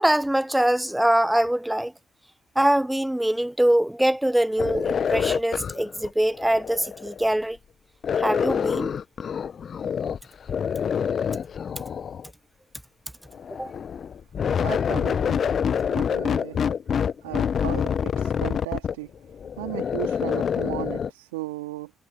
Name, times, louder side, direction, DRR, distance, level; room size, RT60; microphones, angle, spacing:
voice 1, 0.0-1.9 2.6-7.6 8.2-8.9 13.6-13.7, right 1 dB, 5° right, 0.7 m, -23 dB
sound 1, 4.6-7.3 8.0-10.2 10.5-12.3 13.3-21.1, left 7 dB, 50° left, 1.2 m, -26 dB
voice 2, 14.6-15.6 15.9-21.9, right 20 dB, 80° right, 2.3 m, -36 dB
hypercardioid pair, 45°, 0 cm